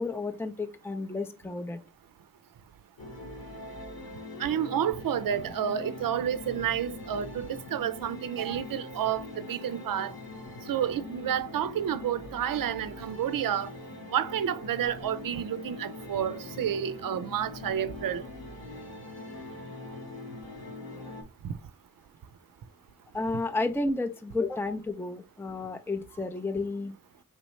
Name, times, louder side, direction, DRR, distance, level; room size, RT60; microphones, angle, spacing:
voice 1, 0.0-1.8 23.1-26.9, left 3 dB, 5° left, 0.5 m, -31 dB
sound 1, 3.0-21.2, left 2 dB, 75° left, 1.9 m, -42 dB
voice 2, 4.4-10.1 10.7-13.7 14.1-18.2, right 9 dB, 65° right, 0.5 m, -30 dB
5.4 x 3.0 x 3.1 m
cardioid pair, 45°, 37 cm